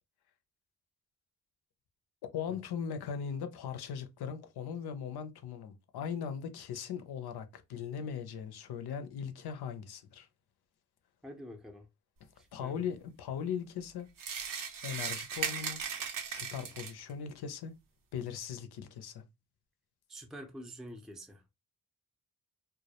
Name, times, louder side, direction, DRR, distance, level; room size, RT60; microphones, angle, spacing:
voice 1, 2.3-10.3 12.5-14.1 14.8-15.8 16.3-17.7 18.1-19.2, left 7 dB, 85° left, 0.5 m, -39 dB
voice 2, 11.2-11.9 12.4-12.9 20.1-21.4, equal, ahead, 0.5 m, -47 dB
sound 1, 14.2-17.1, right 7 dB, 60° right, 0.6 m, -37 dB
2.2 x 2.0 x 2.8 m
cardioid pair, 65°, 38 cm